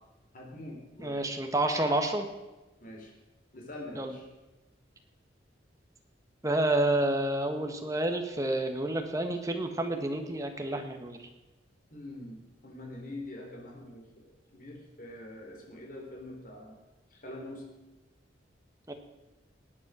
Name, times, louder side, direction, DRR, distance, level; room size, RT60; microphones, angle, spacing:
voice 1, 0.3-1.3 2.8-3.1 3.5-4.2 11.9-14.1 14.5-16.8 17.1-17.6, left 1 dB, 45° left, 0 dB, 3.4 m, -44 dB
voice 2, 1.0-2.3 3.9-4.1 6.4-11.2 18.9-19.0, right 1 dB, 15° right, 5 dB, 1.4 m, -29 dB
19.0 x 8.6 x 6.2 m, 1.1 s
head